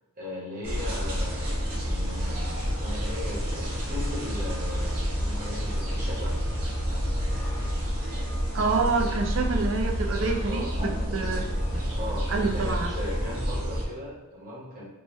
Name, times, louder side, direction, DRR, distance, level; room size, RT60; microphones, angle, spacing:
voice 1, 0.2-6.4 10.4-10.7 12.0-14.8, left 1 dB, 40° right, -8 dB, 1.0 m, -38 dB
sound 1, 0.6-13.8, equal, 80° right, 1.0 m, -29 dB
voice 2, 8.5-11.5 12.3-12.9, right 4 dB, 60° right, 3 dB, 0.4 m, -27 dB
2.9 x 2.2 x 3.1 m, 1.1 s
head